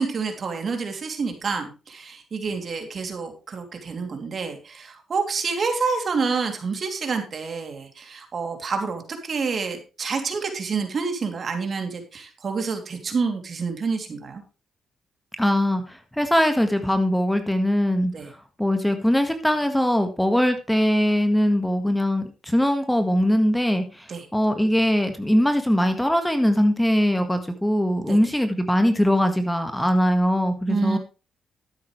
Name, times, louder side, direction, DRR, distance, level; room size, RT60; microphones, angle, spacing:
voice 1, 0.0-14.4 18.1-18.3 24.1-24.3 28.0-28.2 30.7-31.0, right 4 dB, 50° right, 5 dB, 2.9 m, -28 dB
voice 2, 15.4-18.1 18.6-31.0, equal, 5° left, 7 dB, 1.7 m, -21 dB
12.5 x 9.7 x 3.3 m, 0.31 s
cardioid pair, 70°, 0 cm